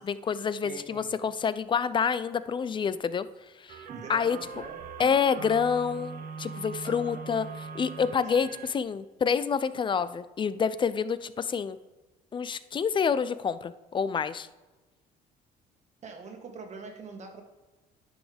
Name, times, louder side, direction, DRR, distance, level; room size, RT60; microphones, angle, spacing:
voice 1, 0.0-3.3 3.6-3.8 4.1-4.4 5.0-7.5 7.7-11.8 12.3-14.5, left 6 dB, 30° left, 15 dB, 0.4 m, -28 dB
voice 2, 0.6-1.1 3.9-4.8 6.8-7.3 8.4-8.6 16.0-17.4, right 4 dB, 40° right, 3 dB, 1.6 m, -43 dB
sound 1, 3.7-8.8, right 5 dB, 65° right, 1.0 m, -41 dB
10.5 x 6.2 x 3.4 m, 1.2 s
cardioid pair, 110°, 17 cm